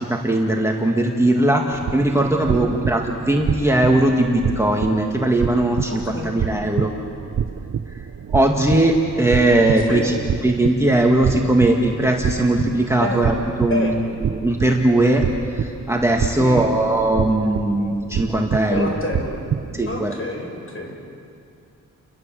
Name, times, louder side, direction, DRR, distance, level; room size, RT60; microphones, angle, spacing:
voice 1, 0.0-6.9 8.3-10.1 10.4-13.9 14.2-15.2 15.5-18.9 19.7-20.1, right 1 dB, 10° right, 0 dB, 1.9 m, -19 dB
sound 1, 1.7-20.0, right 8 dB, 50° right, 0.8 m, -28 dB
voice 2, 5.9-6.3 9.9-10.2 13.0-13.2 13.7-14.0 16.4-16.7 18.7-19.4 19.9-20.9, left 2 dB, 40° left, 2 dB, 6.0 m, -28 dB
29.5 x 22.0 x 7.7 m, 2.5 s
wide cardioid pair, 105°, 33 cm